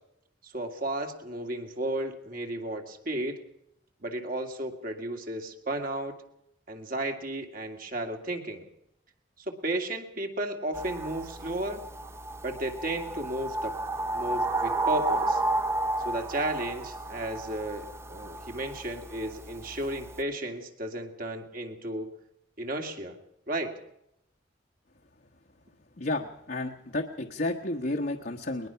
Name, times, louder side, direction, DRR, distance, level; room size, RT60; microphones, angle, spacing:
voice 1, 0.4-3.4 4.0-6.1 6.7-8.6 9.4-11.8 12.4-13.7 14.1-15.4 16.0-22.1 22.6-23.2 23.5-23.7, right 1 dB, 45° right, 3 dB, 2.3 m, -33 dB
sound 1, 10.7-20.2, right 2 dB, 15° right, 0.9 m, -32 dB
voice 2, 26.0-28.7, left 2 dB, 50° left, 1 dB, 1.3 m, -31 dB
21.5 x 21.0 x 5.8 m, 0.78 s
head